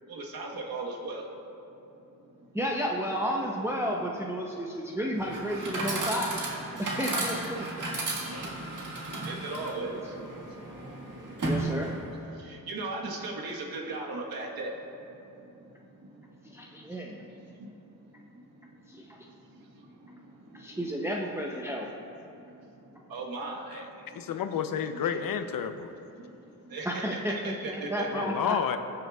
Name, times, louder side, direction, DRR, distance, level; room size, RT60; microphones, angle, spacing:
voice 1, 0.1-1.3 1.7-2.6 4.6-4.7 5.6-5.7 6.7-6.8 7.5-11.8 12.1-21.2 21.6-24.6 25.9-28.6, right 2 dB, 80° right, 0 dB, 1.3 m, -41 dB
voice 2, 2.5-6.3 6.8-7.9 11.4-11.9 13.9-14.0 16.4-17.2 18.9-19.2 20.5-21.9 22.9-23.0 25.0-25.1 26.9-28.6, equal, 5° right, -2 dB, 0.6 m, -32 dB
Chatter / Coin (dropping), 5.2-12.2, right 2 dB, 60° right, 1.7 m, -34 dB
voice 3, 24.2-25.9 28.1-28.8, left 8 dB, 70° left, 9 dB, 0.6 m, -30 dB
18.0 x 6.8 x 2.4 m, 2.9 s
cardioid pair, 95°, 35 cm